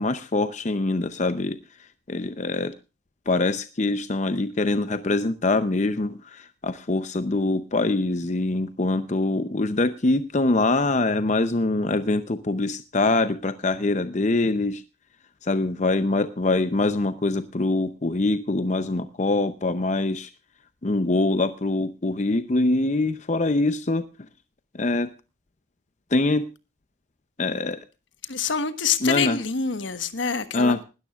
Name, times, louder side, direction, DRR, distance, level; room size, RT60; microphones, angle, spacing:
voice 1, 0.0-1.6 2.1-2.7 3.3-14.8 15.4-20.3 20.8-24.0 24.7-25.1 26.1-26.5 27.4-27.8 29.0-29.4 30.5-30.8, left 2 dB, 35° left, 0.6 m, -24 dB
voice 2, 28.3-30.8, left 6 dB, 70° left, 1.3 m, -26 dB
19.5 x 13.5 x 2.4 m
head